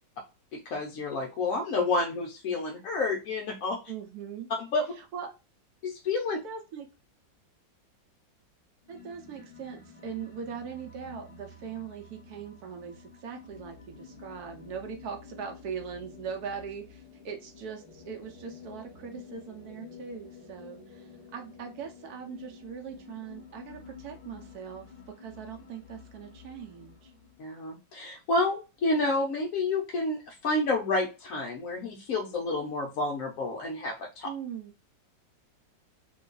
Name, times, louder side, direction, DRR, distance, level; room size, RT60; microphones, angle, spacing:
voice 1, 0.5-3.8 4.6-4.8 5.8-6.4 27.4-34.3, left 2 dB, 70° left, 0 dB, 0.8 m, -29 dB
voice 2, 3.9-4.5 5.0-5.3 6.3-6.9 8.9-27.1 34.2-34.7, right 7 dB, 70° right, 4 dB, 1.0 m, -41 dB
sound 1, 8.8-27.4, left 5 dB, 25° left, 0.9 m, -50 dB
3.0 x 2.3 x 3.7 m, 0.29 s
omnidirectional pair, 2.0 m